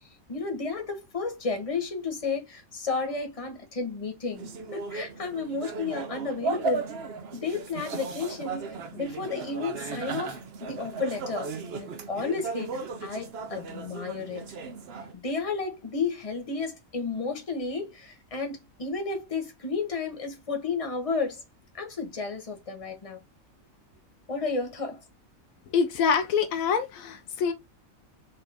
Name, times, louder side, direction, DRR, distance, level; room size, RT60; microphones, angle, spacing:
voice 1, 0.3-4.5 4.7-6.9 7.3-11.5 11.8-14.4 15.1-21.4 21.7-23.2 24.3-25.0, left 4 dB, 25° left, 1.3 m, -32 dB
sound 1, 4.3-15.1, right 4 dB, 55° right, 0.9 m, -36 dB
voice 2, 25.7-27.5, left 6 dB, 75° left, 1.1 m, -25 dB
4.4 x 3.5 x 3.5 m
omnidirectional pair, 1.4 m